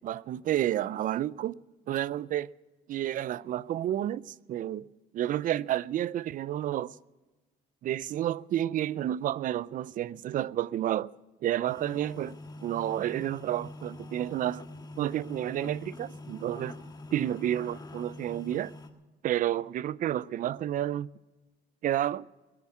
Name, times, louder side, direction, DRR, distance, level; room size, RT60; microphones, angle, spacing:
voice 1, 0.0-1.5 1.9-2.5 2.9-4.9 5.1-6.9 7.8-11.1 11.4-14.6 15.0-16.8 17.1-18.7 19.2-21.1 21.8-22.3, right 12 dB, 50° right, 0.4 m, -30 dB
sound 1, 11.6-18.9, left 2 dB, 25° left, 1.6 m, -45 dB
20.5 x 7.2 x 9.4 m
cardioid pair, 110°, 17 cm